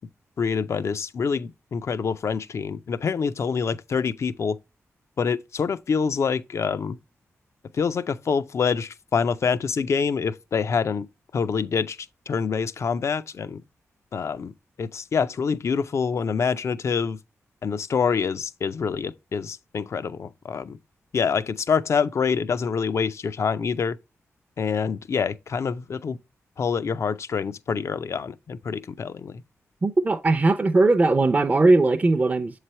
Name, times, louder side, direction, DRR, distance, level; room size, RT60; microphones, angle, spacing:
voice 1, 0.4-4.6 5.2-7.0 7.7-11.1 11.3-12.0 12.3-13.6 14.1-14.5 14.8-17.2 17.6-20.8 21.1-24.0 24.6-26.2 26.6-29.4, left 6 dB, 60° left, 0.4 m, -26 dB
voice 2, 29.8-32.6, right 2 dB, 30° right, 0.5 m, -19 dB
7.4 x 3.2 x 4.2 m
cardioid pair, 75°, 5 cm